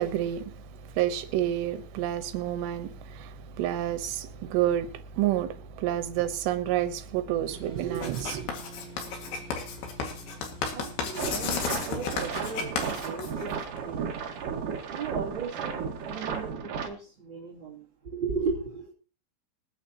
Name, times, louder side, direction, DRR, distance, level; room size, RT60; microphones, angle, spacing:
voice 1, 0.0-8.5, right 12 dB, 80° right, 3.2 m, -29 dB
sound 1, 7.5-16.5, right 1 dB, 10° right, 6.9 m, -49 dB
Writing, 7.9-13.8, left 5 dB, 65° left, 3.9 m, -33 dB
voice 2, 10.7-11.5 11.9-13.5 13.8-14.1 14.9-15.8 16.1-18.9, right 4 dB, 30° right, 2.9 m, -36 dB
sound 2, 11.1-16.9, right 6 dB, 60° right, 2.7 m, -34 dB
26.5 x 9.4 x 2.9 m
omnidirectional pair, 4.9 m